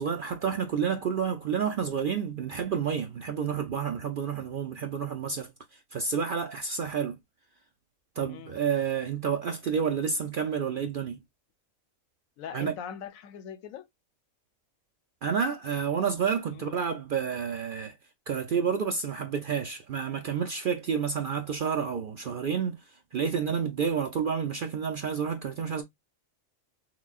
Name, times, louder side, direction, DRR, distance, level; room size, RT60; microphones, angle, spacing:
voice 1, 0.0-7.2 8.2-11.2 12.5-12.7 15.2-18.0 18.3-25.8, right 7 dB, 65° right, 0.5 m, -30 dB
voice 2, 8.2-8.6 12.4-13.9 16.5-16.8, left 7 dB, 90° left, 1.1 m, -41 dB
5.9 x 2.2 x 2.3 m
omnidirectional pair, 1.4 m